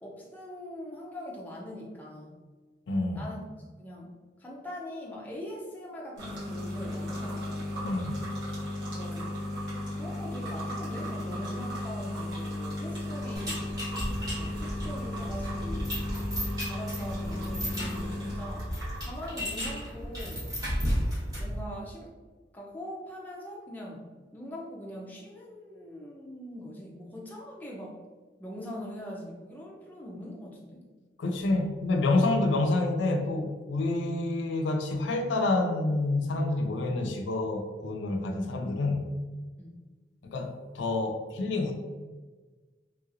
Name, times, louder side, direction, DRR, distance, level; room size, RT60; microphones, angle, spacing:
voice 1, 0.0-2.3 3.1-3.4 3.8-7.7 8.8-9.4 9.9-13.7 14.3-16.0 16.7-20.6 21.4-22.1 22.5-28.0 28.4-30.8 39.6-39.8, equal, 10° left, -3 dB, 0.4 m, -42 dB
voice 2, 2.9-3.3 7.8-8.2 31.2-39.1 40.2-41.7, left 2 dB, 80° left, 4 dB, 0.4 m, -28 dB
sound 1, 6.2-19.2, left 1 dB, 85° right, 1.4 m, -35 dB
sound 2, 13.3-21.6, equal, 20° right, 1.0 m, -34 dB
3.0 x 2.8 x 2.4 m, 1.3 s
head